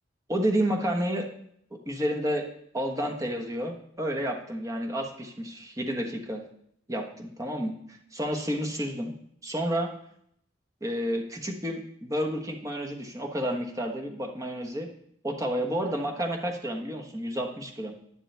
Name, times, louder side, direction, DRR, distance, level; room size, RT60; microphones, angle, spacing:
voice 1, 0.3-1.3 1.8-2.5 2.7-6.4 6.9-9.1 9.4-9.9 10.8-14.9 15.2-18.0, equal, 15° right, 2 dB, 1.2 m, -30 dB
11.0 x 10.5 x 3.4 m, 0.69 s
head